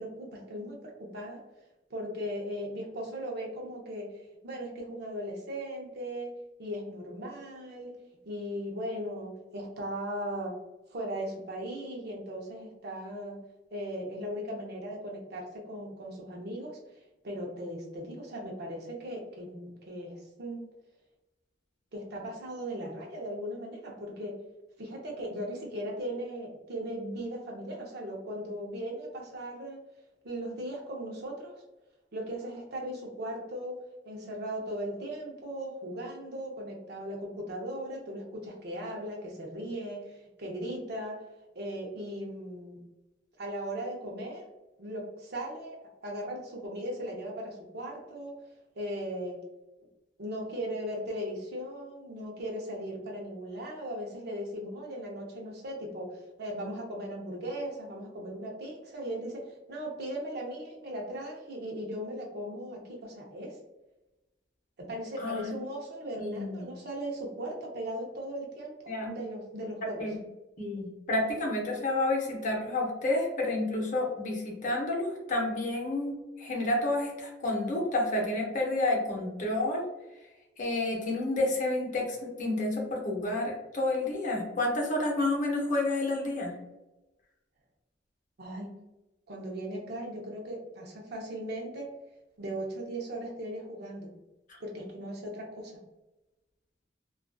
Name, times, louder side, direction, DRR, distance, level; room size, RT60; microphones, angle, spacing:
voice 1, 0.0-1.4 1.9-6.3 6.6-7.9 8.2-10.6 10.9-13.4 13.7-16.8 17.2-20.6 21.9-24.3 24.8-29.8 30.2-31.6 32.1-33.8 34.1-41.2 41.5-42.8 43.4-44.5 44.8-45.8 46.0-48.3 48.8-49.4 50.2-63.6 64.9-70.0 88.4-88.7 89.3-91.9 92.4-94.1 94.6-95.8, equal, 60° right, -1 dB, 0.6 m, -38 dB
voice 2, 65.2-65.5 66.2-66.7 68.9-69.1 70.0-70.2 70.6-79.8 80.1-80.3 80.6-86.6, left 2 dB, 45° left, -1 dB, 0.7 m, -30 dB
2.5 x 2.3 x 2.2 m, 1.0 s
head